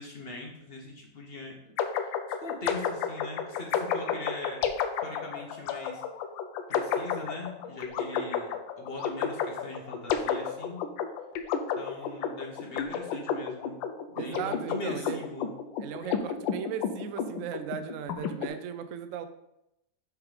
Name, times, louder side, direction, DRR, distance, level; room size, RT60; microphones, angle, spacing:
voice 1, 0.0-4.7 5.0-6.0 6.7-10.9 11.3-11.4 11.8-13.8 14.1-15.5 16.1-16.2, left 2 dB, 45° left, 1 dB, 0.7 m, -41 dB
sound 1, 1.8-18.5, left 7 dB, 85° left, 1.4 m, -31 dB
voice 2, 14.2-15.2 15.8-19.3, right 8 dB, 85° right, 9 dB, 0.7 m, -37 dB
6.8 x 3.5 x 4.8 m, 0.83 s
omnidirectional pair, 2.0 m